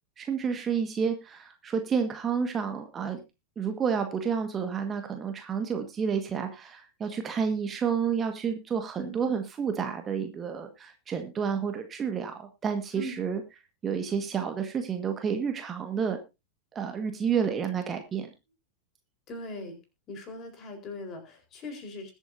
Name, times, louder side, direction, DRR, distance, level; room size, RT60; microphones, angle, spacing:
voice 1, 0.2-3.2 3.6-13.4 13.8-16.2 16.7-18.3, right 6 dB, 20° right, 6 dB, 1.6 m, -30 dB
voice 2, 9.0-9.4 12.9-13.2 19.3-19.8 20.1-22.1, left 1 dB, 30° left, 5 dB, 4.2 m, -40 dB
21.5 x 8.2 x 2.7 m, 0.25 s
figure-of-eight pair, 90°, 0 cm